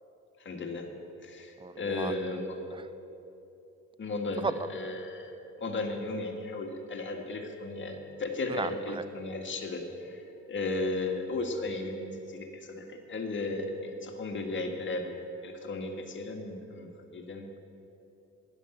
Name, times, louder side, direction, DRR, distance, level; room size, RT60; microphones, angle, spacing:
voice 1, 0.4-0.9 1.2-2.6 4.0-5.3 5.6-10.2 10.5-15.2 15.4-17.5, left 2 dB, 40° left, 2 dB, 1.8 m, -35 dB
voice 2, 1.6-2.1 2.7-2.9 4.4-4.5 8.5-9.0, right 4 dB, 15° right, 13 dB, 0.6 m, -34 dB
11.0 x 10.0 x 7.8 m, 2.9 s
cardioid pair, 90°, 30 cm